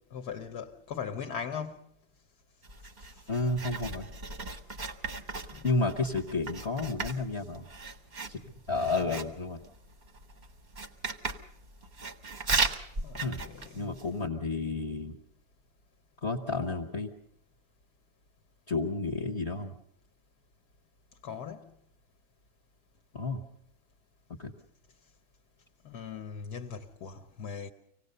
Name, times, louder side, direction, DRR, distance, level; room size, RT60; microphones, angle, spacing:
voice 1, 0.1-1.8 5.5-5.9 13.0-13.9 21.2-21.7 25.8-27.7, left 6 dB, 55° left, 1.4 m, -39 dB
Writing, 2.6-14.2, right 4 dB, 35° right, 0.8 m, -37 dB
voice 2, 3.3-4.1 5.6-7.7 8.3-9.6 13.2-13.4 13.7-15.2 16.2-17.1 18.7-19.7 23.1-23.4 24.4-24.5, left 3 dB, 40° left, 1.3 m, -31 dB
25.0 x 18.0 x 6.7 m
omnidirectional pair, 2.2 m